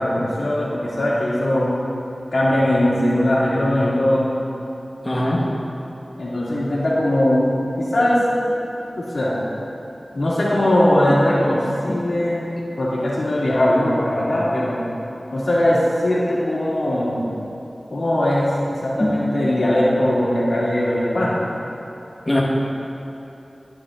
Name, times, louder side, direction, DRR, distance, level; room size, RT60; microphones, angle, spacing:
voice 1, 0.0-1.7 2.3-4.3 6.2-7.5 7.8-8.2 9.0-9.3 10.1-12.5 12.8-14.8 15.3-17.3 17.9-21.4, left 1 dB, 80° left, -7 dB, 2.4 m, -20 dB
voice 2, 5.0-5.4 11.1-11.2 11.9-12.0 19.0-19.3 22.2-22.4, left 1 dB, 30° left, -5 dB, 1.6 m, -21 dB
12.0 x 9.6 x 3.8 m, 3.0 s
wide cardioid pair, 60°, 0 cm